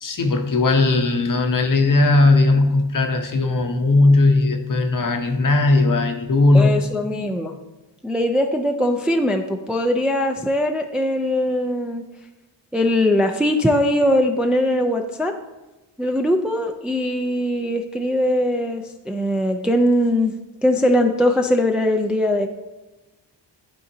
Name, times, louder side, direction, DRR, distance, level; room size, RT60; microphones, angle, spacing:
voice 1, 0.0-6.9, left 2 dB, 45° left, 6 dB, 0.8 m, -17 dB
voice 2, 6.5-7.5 8.0-12.1 12.7-15.4 16.0-20.3 20.6-22.5, left 1 dB, ahead, 4 dB, 0.4 m, -21 dB
11.0 x 3.9 x 2.7 m, 1.1 s
wide cardioid pair, 90°, 44 cm